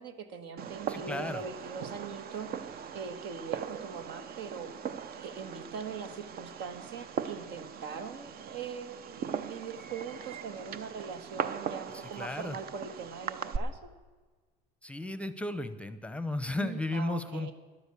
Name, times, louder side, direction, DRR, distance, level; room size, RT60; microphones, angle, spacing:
voice 1, 0.0-4.7 5.2-13.9 16.6-17.5, right 6 dB, 75° right, 8 dB, 1.7 m, -41 dB
Fireworks, 0.6-13.6, right 7 dB, 55° right, 0.8 m, -40 dB
voice 2, 0.9-1.4 11.9-12.6 14.8-17.5, left 2 dB, 5° left, 13 dB, 0.7 m, -34 dB
13.0 x 10.5 x 7.0 m, 1.4 s
cardioid pair, 105°, 18 cm